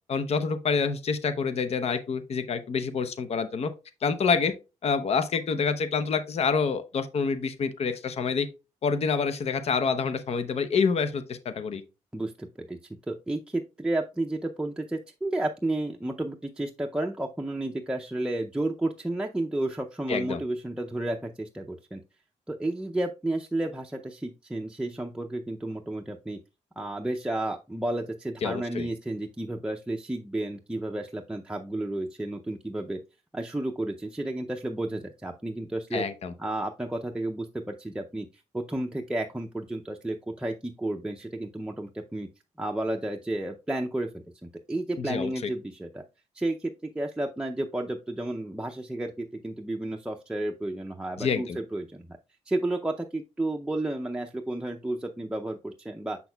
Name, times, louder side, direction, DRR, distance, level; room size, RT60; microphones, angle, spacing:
voice 1, 0.1-3.7 4.0-4.5 4.8-8.5 8.8-11.8 20.1-20.4 28.4-28.9 35.9-36.3 45.0-45.5 51.2-51.6, left 5 dB, 55° left, 0.7 m, -27 dB
voice 2, 12.1-12.8 13.1-22.0 22.5-26.4 26.8-33.0 33.3-36.0 36.4-38.3 38.5-42.3 42.6-44.2 44.7-46.0 46.4-52.0 52.5-56.2, right 1 dB, 5° right, 0.5 m, -32 dB
6.9 x 6.1 x 2.3 m
cardioid pair, 110°, 13 cm